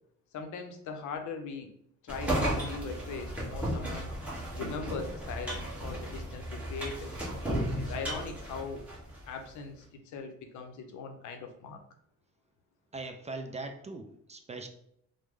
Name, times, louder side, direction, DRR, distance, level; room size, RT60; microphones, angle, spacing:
voice 1, 0.3-1.7 2.0-4.1 4.5-7.1 7.8-8.8 9.3-11.8, left 4 dB, 75° left, 5 dB, 0.6 m, -40 dB
sound 1, 2.1-9.3, right 1 dB, 5° right, 1.1 m, -34 dB
voice 2, 12.9-14.7, right 3 dB, 25° right, 5 dB, 0.3 m, -40 dB
3.1 x 2.1 x 3.5 m, 0.72 s
cardioid pair, 90°, 30 cm